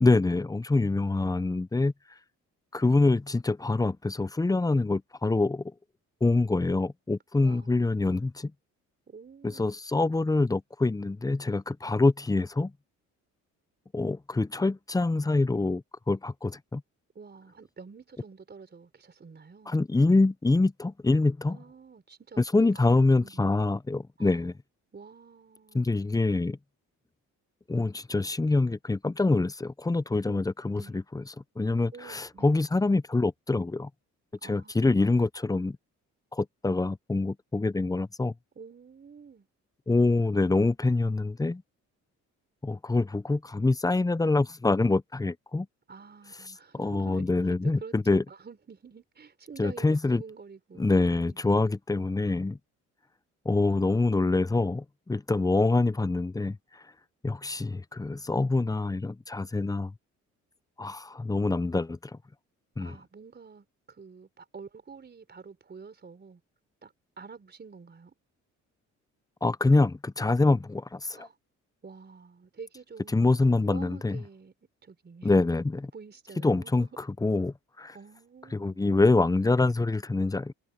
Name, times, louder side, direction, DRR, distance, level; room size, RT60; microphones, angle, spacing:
voice 1, 0.0-1.9 2.7-5.6 6.2-8.5 9.4-12.7 13.9-16.8 19.7-21.6 22.4-24.5 25.7-26.6 27.7-31.2 31.6-33.9 34.4-35.8 36.3-38.3 39.9-41.6 42.6-45.7 46.8-48.2 49.6-50.2 50.8-52.6 53.5-56.6 57.2-59.9 60.8-62.1 62.8-63.0 69.4-71.3 73.1-74.2 75.2-75.9 76.4-77.9 78.5-80.5, left 3 dB, 10° left, 0.7 m, -25 dB
voice 2, 7.4-8.1 9.1-9.7 17.1-19.8 21.5-23.5 24.2-24.4 24.9-25.9 30.2-30.4 30.7-31.0 31.9-32.5 34.4-34.7 38.5-39.5 45.9-51.4 62.8-66.4 66.8-68.1 71.1-71.4 71.8-74.5 74.8-75.3 75.9-76.9 77.9-78.9, right 5 dB, 35° right, 4.4 m, -48 dB
cardioid pair, 90°, 30 cm